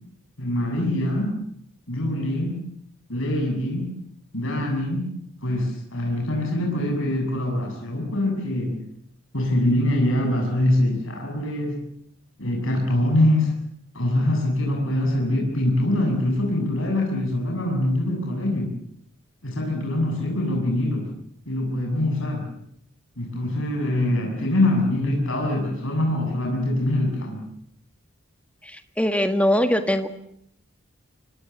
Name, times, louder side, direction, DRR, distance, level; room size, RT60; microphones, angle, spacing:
voice 1, 0.4-1.3 1.9-2.6 3.1-3.9 4.3-5.1 5.4-8.8 9.3-11.8 12.4-13.5 13.9-18.8 19.4-21.1 21.5-22.5 23.2-27.4, left 1 dB, 70° left, 0 dB, 7.5 m, -24 dB
voice 2, 29.0-30.1, equal, 5° left, 7 dB, 1.7 m, -21 dB
25.5 x 24.5 x 8.1 m, 0.70 s
head